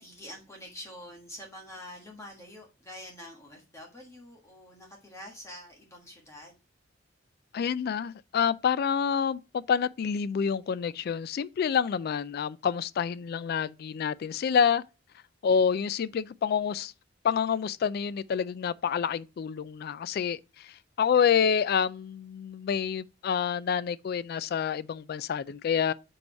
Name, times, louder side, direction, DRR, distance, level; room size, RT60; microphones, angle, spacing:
voice 1, 0.0-6.6, left 1 dB, 15° left, 1.4 m, -46 dB
voice 2, 7.5-14.8 15.4-16.9 17.2-25.9, left 7 dB, 55° left, 0.3 m, -28 dB
5.1 x 4.8 x 4.6 m
head